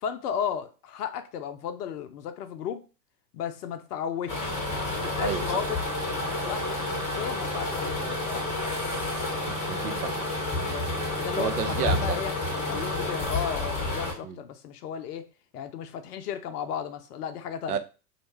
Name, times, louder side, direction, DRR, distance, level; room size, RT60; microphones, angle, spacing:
voice 1, 0.0-2.8 3.3-5.8 6.2-8.4 10.6-12.3 12.6-15.3 15.5-17.8, left 8 dB, 65° left, 0.6 m, -34 dB
sound 1, 4.3-14.1, left 2 dB, 15° left, 0.9 m, -30 dB
voice 2, 5.2-5.6 9.5-10.2 11.4-12.2 14.2-14.4 17.7-17.8, right 8 dB, 65° right, 0.6 m, -31 dB
2.5 x 2.1 x 3.0 m
figure-of-eight pair, 90°, 50 cm